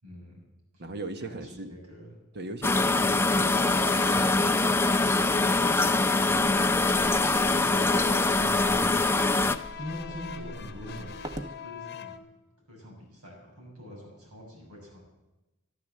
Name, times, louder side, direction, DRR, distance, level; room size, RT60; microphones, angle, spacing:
voice 1, 0.0-0.4 0.7-0.8 1.2-2.1 8.4-8.9 9.8-11.2 11.6-12.2 12.7-15.0, left 1 dB, 90° right, -1 dB, 6.9 m, -43 dB
voice 2, 0.8-1.7 2.3-7.0 7.7-8.6, right 2 dB, 50° right, 8 dB, 1.3 m, -41 dB
sound 1, 2.6-9.6, left 3 dB, 10° left, 0.4 m, -23 dB
sound 2, 3.3-12.2, left 7 dB, 45° left, 1.0 m, -42 dB
sound 3, 6.3-11.6, equal, 20° right, 0.9 m, -44 dB
13.5 x 12.0 x 7.6 m, 1.0 s
head